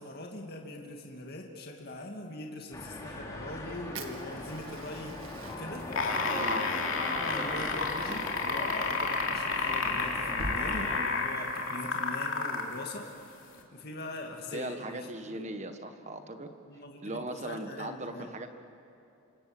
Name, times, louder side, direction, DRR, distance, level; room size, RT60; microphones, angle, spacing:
voice 1, 0.0-5.2 5.5-6.3 7.1-13.4 13.7-15.5 16.7-18.3, left 2 dB, 45° left, 1 dB, 2.3 m, -42 dB
sound 1, 2.7-11.0, left 1 dB, 15° left, 3.7 m, -40 dB
Fire, 3.9-10.6, right 2 dB, 70° right, 2.0 m, -46 dB
sound 2, 5.8-12.7 13.6-13.7, left 4 dB, 65° left, 3.1 m, -31 dB
voice 2, 6.3-6.7 14.5-16.5 17.0-18.5, right 1 dB, 30° right, 7 dB, 1.5 m, -39 dB
27.5 x 26.5 x 7.8 m, 2.7 s
head